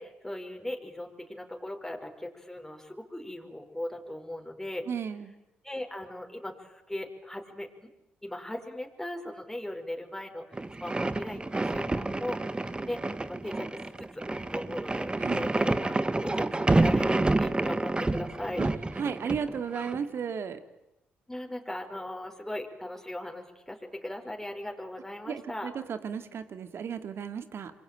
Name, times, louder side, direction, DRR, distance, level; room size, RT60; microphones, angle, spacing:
voice 1, 0.0-4.8 5.6-7.9 8.2-18.7 21.3-25.7, left 1 dB, 10° left, 3 dB, 5.0 m, -39 dB
voice 2, 4.9-5.4 15.2-15.5 18.6-18.7 18.9-20.6 25.3-27.7, right 7 dB, 60° right, 10 dB, 2.4 m, -34 dB
sound 1, 10.5-20.0, right 2 dB, 20° right, 1.5 m, -28 dB
26.5 x 22.0 x 9.0 m, 0.89 s
hypercardioid pair, 45°, 5 cm